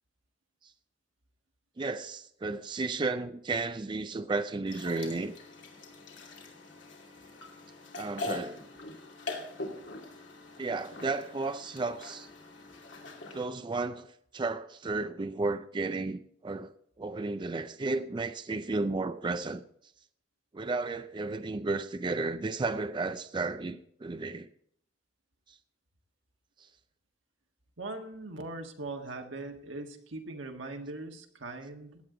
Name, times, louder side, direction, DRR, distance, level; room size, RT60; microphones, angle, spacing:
voice 1, 1.8-5.3 8.0-8.6 10.6-12.3 13.3-19.6 20.5-24.5 25.5-25.6 26.6-26.7, right 3 dB, 25° right, 0.4 m, -33 dB
sound 1, 4.7-13.4, left 2 dB, 70° left, 2.6 m, -43 dB
voice 2, 27.8-32.0, right 2 dB, 85° right, 1.6 m, -40 dB
16.5 x 9.5 x 3.8 m
head